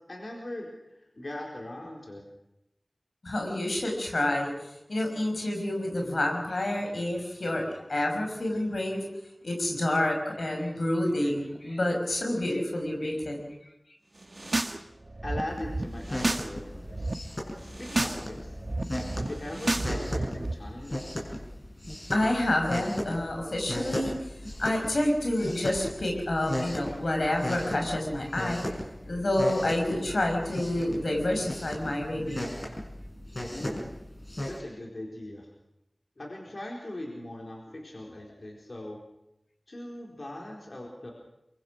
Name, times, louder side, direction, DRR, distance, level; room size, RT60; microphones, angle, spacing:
voice 1, 0.1-2.2 15.2-17.1 17.6-18.6 19.1-21.2 33.5-34.0 34.5-35.5 36.2-39.0 39.7-41.1, left 1 dB, 65° left, -1 dB, 4.3 m, -40 dB
voice 2, 3.2-9.0 9.4-13.5 22.1-28.7 29.1-32.7, left 1 dB, 85° left, 2 dB, 5.5 m, -29 dB
sound 1, 14.2-14.8 15.0-16.5 16.8-17.1 17.6-18.2 18.5-20.5, right 2 dB, 55° right, 1.6 m, -31 dB
sound 2, 15.5-34.6, left 1 dB, 40° left, 5.9 m, -37 dB
23.5 x 23.5 x 6.3 m, 0.86 s
wide cardioid pair, 45°, 0 cm